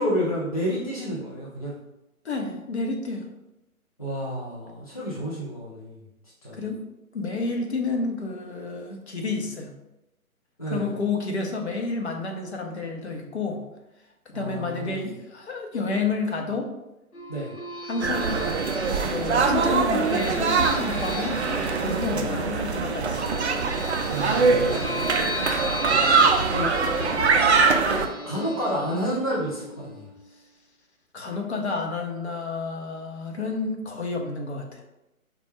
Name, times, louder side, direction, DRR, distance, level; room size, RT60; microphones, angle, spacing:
voice 1, 0.0-1.8 4.0-6.0 6.4-6.5 10.6-11.0 14.3-15.1 17.3-17.5 22.1-22.3 24.1-25.1 26.2-26.8 27.9-30.1, equal, 25° left, -7 dB, 0.4 m, -30 dB
voice 2, 2.2-3.3 6.5-6.8 7.1-9.7 10.7-13.6 14.3-16.7 17.9-18.4 19.0-21.4 21.8-23.3 31.1-34.8, left 3 dB, 50° left, 2 dB, 0.8 m, -30 dB
sound 1, 17.1-30.3, left 2 dB, 75° left, 1.0 m, -36 dB
sound 2, 18.0-28.1, right 4 dB, 50° right, 0.4 m, -23 dB
5.1 x 2.3 x 3.1 m, 0.90 s
figure-of-eight pair, 135°, 44 cm